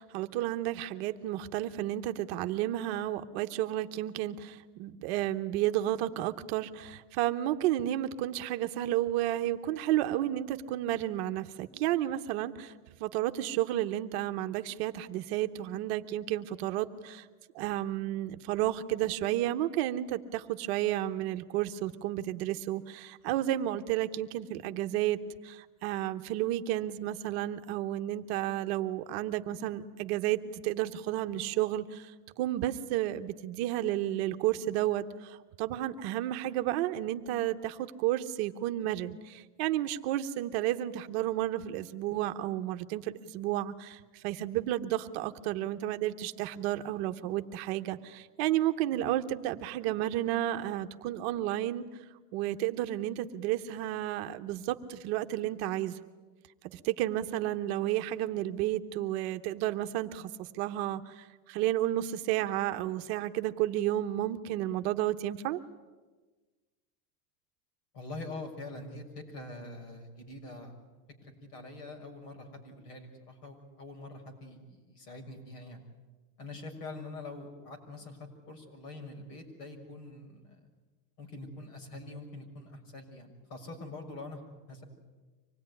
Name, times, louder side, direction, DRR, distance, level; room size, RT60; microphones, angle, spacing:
voice 1, 0.0-12.7 13.0-17.3 17.5-32.1 32.4-51.9 52.3-56.0 56.7-65.6, right 13 dB, 40° right, 8 dB, 1.0 m, -32 dB
voice 2, 67.9-70.7 71.2-75.8 76.4-78.2 78.5-80.6 81.2-84.8, left 2 dB, 75° left, 3 dB, 6.6 m, -44 dB
25.0 x 19.5 x 9.8 m, 1.3 s
supercardioid pair, 170°, 47 cm